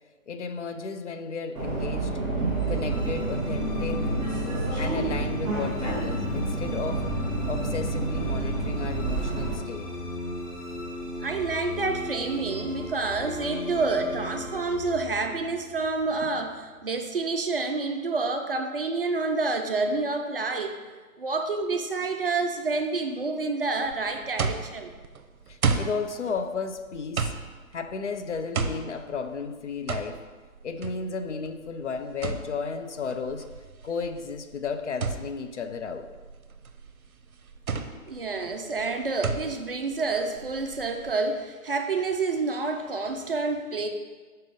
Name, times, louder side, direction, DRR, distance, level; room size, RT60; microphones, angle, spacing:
voice 1, 0.3-2.2 2.7-4.1 4.8-7.1 7.5-9.9 25.5-27.3 27.7-30.2 30.6-33.5 33.8-36.1, left 5 dB, 55° left, 9 dB, 0.5 m, -33 dB
Subway metro underground, 1.5-9.5, right 3 dB, 5° left, 0.6 m, -29 dB
sound 1, 2.5-16.9, left 3 dB, 35° left, 1.9 m, -37 dB
voice 2, 11.2-20.8 21.2-24.9 38.1-43.9, right 3 dB, 45° right, 4 dB, 0.4 m, -28 dB
sound 2, 23.8-41.1, right 4 dB, 75° right, 0.7 m, -34 dB
5.4 x 3.7 x 5.3 m, 1.4 s
figure-of-eight pair, 140°, 43 cm